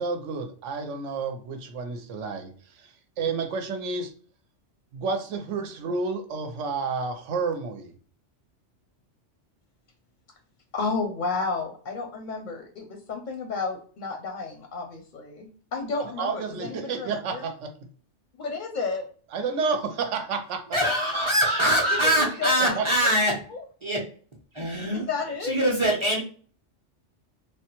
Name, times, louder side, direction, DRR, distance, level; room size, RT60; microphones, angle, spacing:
voice 1, 0.0-2.5 2.8-2.9 3.2-4.1 4.9-7.9 16.2-17.7 19.3-20.8 22.8-22.9, right 4 dB, 85° right, 6 dB, 1.0 m, -30 dB
voice 2, 10.7-17.5 18.4-19.1 21.1-21.2 21.9-22.1 22.4-22.7 23.5-23.6 24.9-25.6, left 4 dB, 55° left, 3 dB, 0.6 m, -32 dB
voice 3, 20.7-23.4 23.8-24.0 24.5-25.1 25.4-26.2, equal, 30° right, -2 dB, 0.6 m, -23 dB
3.3 x 2.2 x 2.9 m, 0.42 s
omnidirectional pair, 1.2 m